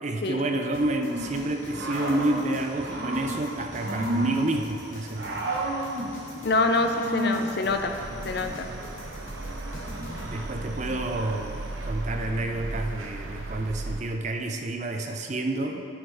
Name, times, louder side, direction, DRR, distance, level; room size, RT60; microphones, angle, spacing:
voice 1, 0.0-5.5 10.2-15.9, right 2 dB, 35° right, 4 dB, 0.5 m, -29 dB
sound 1, 0.7-10.2, left 1 dB, 85° left, 2.1 m, -48 dB
Growling / Cricket, 1.0-11.9, right 1 dB, 60° right, 1.1 m, -34 dB
voice 2, 6.4-7.9 8.2-8.7, left 2 dB, 55° left, 6 dB, 0.5 m, -25 dB
sound 2, 7.7-14.0, right 2 dB, 90° right, 0.8 m, -36 dB
9.8 x 8.0 x 3.4 m, 2.5 s
head